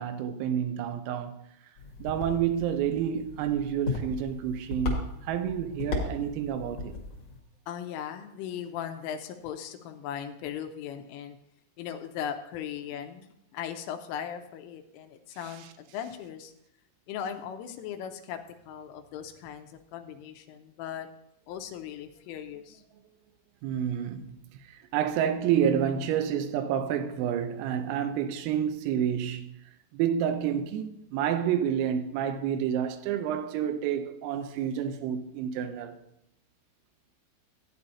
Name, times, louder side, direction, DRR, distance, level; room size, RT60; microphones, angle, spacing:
voice 1, 0.0-1.4 2.0-7.0 23.6-29.6 29.9-36.0, right 9 dB, 90° right, 3.4 m, -29 dB
sound 1, 1.8-7.4, left 3 dB, 55° left, 1.7 m, -36 dB
voice 2, 7.7-11.4 11.8-16.5 17.1-21.1 21.5-22.8, left 9 dB, 85° left, 3.1 m, -38 dB
15.0 x 9.7 x 2.7 m
omnidirectional pair, 6.0 m